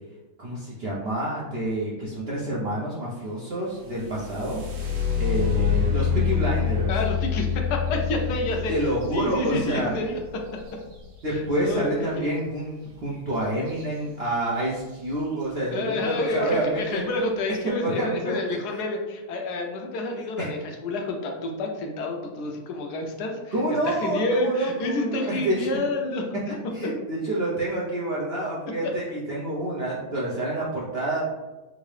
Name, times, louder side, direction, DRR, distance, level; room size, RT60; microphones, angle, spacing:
voice 1, 0.4-4.6 5.2-6.9 8.7-9.9 11.2-17.0 17.5-18.4 20.4-20.5 23.5-25.7 26.7-31.2, right 1 dB, 60° right, -6 dB, 0.6 m, -28 dB
sound 1, 3.8-11.6 13.7-13.8 14.3-14.8 15.4-15.5 16.0-16.4, left 7 dB, 80° right, 1.3 m, -27 dB
voice 2, 6.9-10.4 11.3-12.3 15.7-23.5 23.9-26.5 28.8-28.9, left 2 dB, 80° left, 2 dB, 1.2 m, -29 dB
3.8 x 2.6 x 3.2 m, 1.1 s
omnidirectional pair, 1.8 m